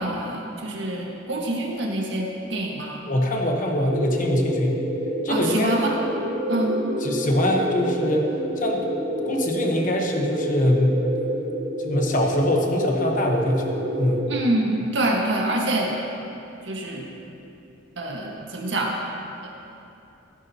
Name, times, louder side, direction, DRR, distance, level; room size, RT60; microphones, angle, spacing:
voice 1, 0.0-3.0 5.3-6.0 6.5-6.8 14.3-15.9 16.6-17.1 18.0-18.9, right 1 dB, 75° right, -1 dB, 1.7 m, -26 dB
voice 2, 3.0-4.8 5.2-5.7 7.0-8.8 9.2-11.0 11.8-13.6 14.0-14.3, left 1 dB, 45° left, 1 dB, 1.2 m, -23 dB
sound 1, 3.8-14.4, equal, 45° right, 1.4 m, -28 dB
15.0 x 11.0 x 2.9 m, 2.7 s
head